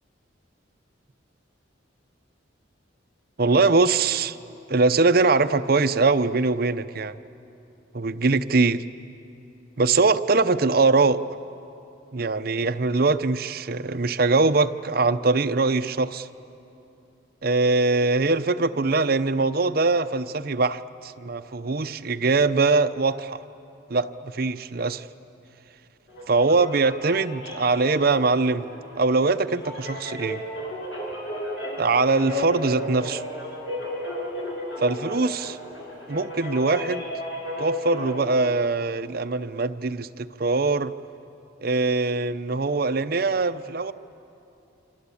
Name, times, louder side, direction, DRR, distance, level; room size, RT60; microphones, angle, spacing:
voice 1, 3.4-4.4 4.7-7.2 7.9-8.8 9.8-11.2 12.1-16.3 17.4-23.4 23.9-25.1 26.3-28.7 29.0-30.4 31.8-33.2 34.8-35.6 36.1-37.0 37.6-40.9 41.6-43.9, right 3 dB, 50° right, 10 dB, 0.7 m, -22 dB
sound 1, 26.1-38.2, left 1 dB, 65° left, 6.0 m, -34 dB
26.5 x 26.0 x 8.5 m, 2.9 s
head